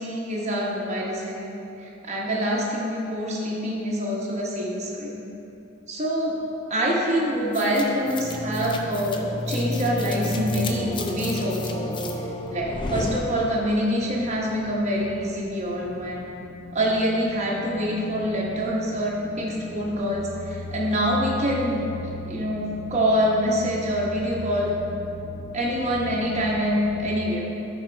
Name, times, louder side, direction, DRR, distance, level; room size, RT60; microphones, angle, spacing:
voice 1, 0.0-5.2 5.9-6.4 6.7-11.8 12.5-16.3 16.7-24.7 25.5-27.5, equal, 35° right, -4 dB, 1.1 m, -25 dB
sound 1, 7.5-13.9, left 1 dB, 25° left, 0.4 m, -30 dB
sound 2, 8.2-27.1, left 3 dB, 80° left, 0.8 m, -40 dB
10.0 x 4.4 x 4.5 m, 2.9 s
head